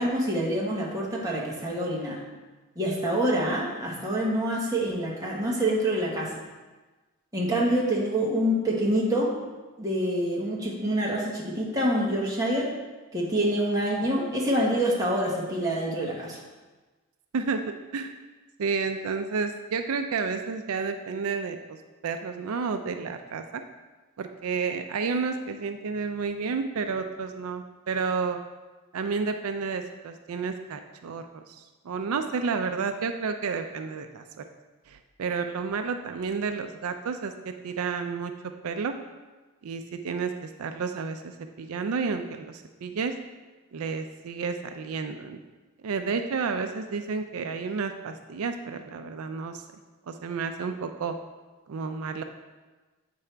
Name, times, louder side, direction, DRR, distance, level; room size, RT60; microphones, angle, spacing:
voice 1, 0.0-2.2 2.7-6.3 7.3-9.3 9.8-12.7 13.1-16.4, right 1 dB, 15° right, -4 dB, 1.3 m, -26 dB
voice 2, 17.3-18.1 18.6-21.8 22.0-23.6 24.2-28.4 28.9-34.4 34.9-38.3 38.6-39.0 39.6-43.1 43.7-45.4 45.8-49.6 50.1-51.2 51.7-52.2, right 5 dB, 80° right, 7 dB, 0.4 m, -31 dB
8.3 x 4.8 x 3.3 m, 1.2 s
head